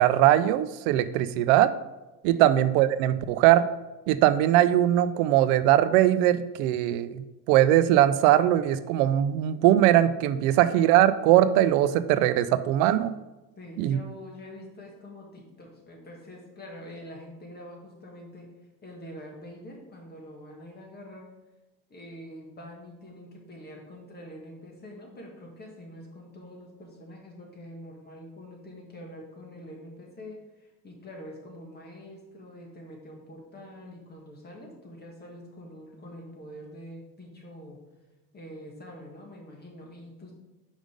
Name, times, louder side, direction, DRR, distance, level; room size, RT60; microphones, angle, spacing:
voice 1, 0.0-1.7 2.2-3.7 4.1-13.1 13.8-14.0, right 13 dB, 90° right, 13 dB, 0.5 m, -21 dB
voice 2, 13.6-18.5 18.8-21.3 21.9-37.8 38.3-40.3, equal, 25° left, 0 dB, 1.7 m, -45 dB
5.2 x 5.1 x 5.0 m, 1.1 s
cardioid pair, 130°, 40 cm